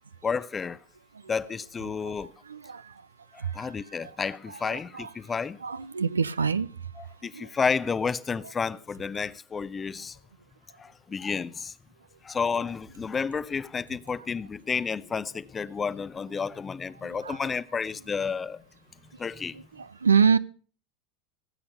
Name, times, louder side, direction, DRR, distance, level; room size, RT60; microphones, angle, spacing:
voice 1, 0.2-0.8 1.3-2.3 3.5-5.6 7.0-10.2 10.8-11.7 12.2-18.6 19.2-19.5, left 5 dB, 20° left, 0.7 m, -31 dB
voice 2, 2.0-2.9 3.4-4.1 4.5-5.1 5.6-6.7 7.3-7.5 17.0-17.6 19.5-20.4, right 6 dB, 75° right, 0.6 m, -27 dB
18.0 x 8.7 x 6.6 m
figure-of-eight pair, 80°, 0 cm